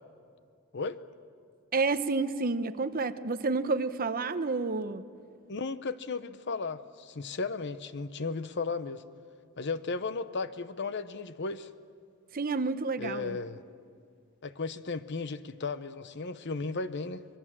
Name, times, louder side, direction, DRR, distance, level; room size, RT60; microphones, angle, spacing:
voice 1, 1.7-5.0 12.3-13.4, right 3 dB, 45° right, 11 dB, 0.8 m, -30 dB
voice 2, 5.5-9.0 9.6-11.7 13.0-13.6 14.4-17.3, left 4 dB, 55° left, 13 dB, 0.8 m, -35 dB
26.0 x 21.0 x 7.5 m, 2.2 s
head